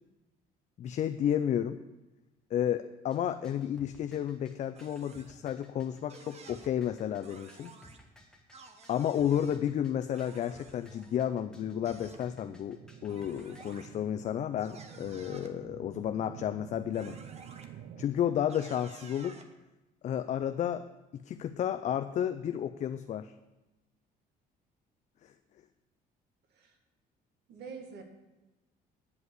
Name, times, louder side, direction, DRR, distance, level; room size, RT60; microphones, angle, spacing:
voice 1, 0.8-1.8 2.5-7.7 8.9-17.2 18.0-19.4 20.0-20.8 21.1-23.3 25.2-25.3, left 10 dB, 45° left, 9 dB, 0.4 m, -32 dB
sound 1, 3.1-13.8, equal, 5° left, 1.4 m, -57 dB
sound 2, 4.8-5.4 6.1-6.7 7.2-8.0 8.5-9.6 10.1-11.2 11.8-12.2 13.1-13.9 14.6-15.5 16.9-17.7 18.5-19.5, right 4 dB, 40° right, 1.1 m, -53 dB
sound 3, 11.5-18.1, right 9 dB, 60° right, 0.5 m, -50 dB
voice 2, 27.5-28.0, right 5 dB, 80° right, 3 dB, 1.9 m, -45 dB
9.5 x 5.3 x 8.1 m, 1.1 s
cardioid pair, 110°, 17 cm